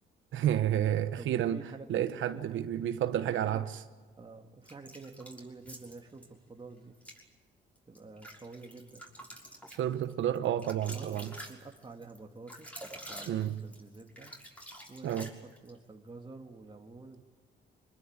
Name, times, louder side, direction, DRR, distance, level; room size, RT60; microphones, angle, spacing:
voice 1, 0.3-1.6 1.9-3.6 9.7-11.3 13.3-13.6 15.0-15.3, right 11 dB, 75° right, 9 dB, 1.2 m, -30 dB
voice 2, 1.1-1.9 2.1-2.6 3.3-3.6 4.2-7.0 7.9-9.1 10.9-12.8 13.1-14.3 14.9-15.2 15.6-17.2, right 3 dB, 25° right, 2 dB, 2.2 m, -48 dB
sound 1, 4.6-6.3 6.9-7.2 7.7-15.8, equal, 5° left, 6.2 m, -48 dB
26.0 x 21.0 x 8.9 m, 1.4 s
cardioid pair, 90°, 20 cm